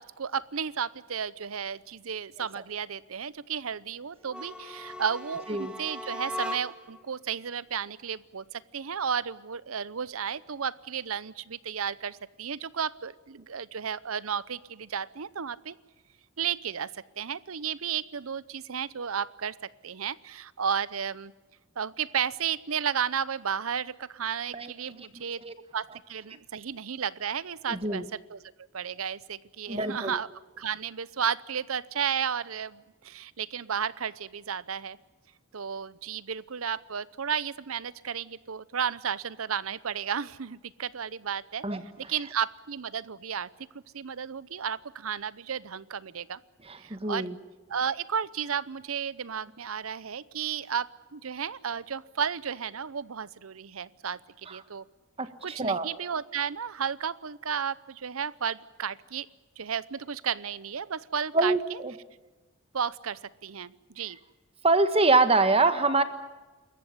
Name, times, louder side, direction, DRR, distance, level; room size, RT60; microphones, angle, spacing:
voice 1, 0.0-15.7 16.4-19.6 19.8-21.3 21.8-25.4 25.7-28.4 28.7-30.3 30.6-35.0 35.5-41.7 42.0-43.5 43.9-46.4 46.8-47.3 47.7-54.2 54.5-54.8 55.4-59.3 59.6-61.5 62.7-64.2, right 7 dB, 90° right, 19 dB, 0.8 m, -33 dB
sound 1, 4.2-7.0, left 1 dB, 5° right, 1.4 m, -38 dB
voice 2, 25.0-25.5 27.7-28.0 29.7-30.2 41.6-41.8 46.6-47.4 54.5-54.6 55.2-55.9 61.3-61.9 64.6-66.0, right 3 dB, 30° right, 10 dB, 1.5 m, -25 dB
27.5 x 14.5 x 9.7 m, 1.2 s
head